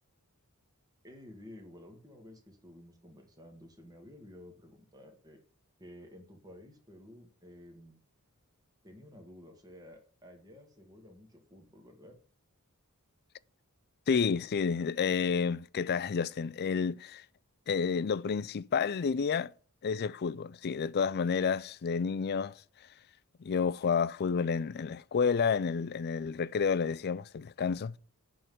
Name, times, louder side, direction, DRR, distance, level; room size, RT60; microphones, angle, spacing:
voice 1, 1.0-5.4 5.8-8.0 8.8-12.2, left 1 dB, 15° right, 1.8 m, -52 dB
voice 2, 14.1-17.2 17.7-19.5 19.8-22.6 23.4-28.0, left 6 dB, 45° left, 0.4 m, -30 dB
11.0 x 3.9 x 7.7 m
head